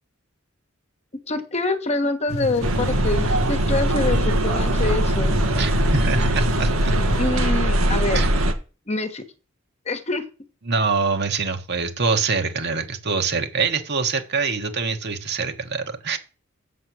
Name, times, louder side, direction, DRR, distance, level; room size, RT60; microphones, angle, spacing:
voice 1, 1.3-5.4 7.2-8.2 8.9-9.2 9.9-10.2, left 2 dB, 30° left, 7 dB, 1.2 m, -25 dB
sound 1, 2.3-7.3, left 3 dB, 85° left, 0.9 m, -30 dB
sound 2, 2.6-8.5, right 1 dB, 85° right, 1.3 m, -21 dB
voice 2, 5.6-6.9 8.1-8.3 10.7-16.2, right 4 dB, 55° right, 6 dB, 1.3 m, -24 dB
7.4 x 7.3 x 6.2 m, 0.34 s
head